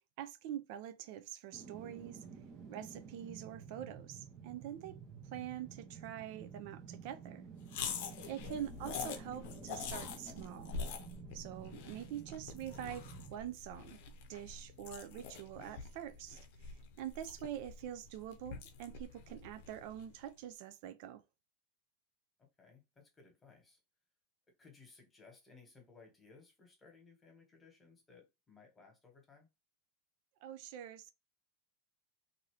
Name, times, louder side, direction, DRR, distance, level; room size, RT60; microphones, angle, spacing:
voice 1, 0.2-2.2 2.7-5.0 5.3-7.4 8.3-10.7 11.3-14.0 14.3-21.2 30.4-31.1, right 11 dB, 60° right, 0.3 m, -45 dB
sound 1, 1.5-14.6 14.9-15.0, right 6 dB, 35° right, 0.7 m, -52 dB
sound 2, 7.7-20.2, left 6 dB, 65° left, 0.6 m, -46 dB
voice 2, 22.6-23.8 24.6-29.5, left 4 dB, 15° left, 1.3 m, -61 dB
2.7 x 2.6 x 3.1 m
supercardioid pair, 130°, 0 cm